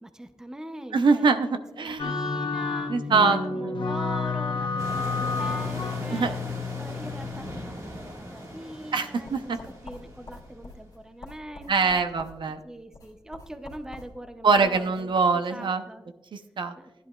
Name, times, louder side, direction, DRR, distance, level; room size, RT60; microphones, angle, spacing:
voice 1, 0.0-2.9 3.3-4.7 4.9-6.4 6.8-9.5 9.8-12.0 12.6-16.1 16.8-17.1, right 1 dB, 5° right, 8 dB, 0.5 m, -41 dB
voice 2, 0.9-2.2 2.9-3.8 6.1-6.4 8.9-9.6 11.7-12.6 14.4-15.8 16.3-16.7, right 4 dB, 70° right, 8 dB, 0.7 m, -24 dB
sound 1, 2.0-7.7, left 4 dB, 70° left, 0.9 m, -30 dB
sound 2, 4.8-10.7, equal, 35° right, 1.7 m, -39 dB
sound 3, 9.2-15.1, left 2 dB, 45° left, 2.1 m, -47 dB
15.0 x 10.5 x 2.3 m, 1.0 s
wide cardioid pair, 165°, 9 cm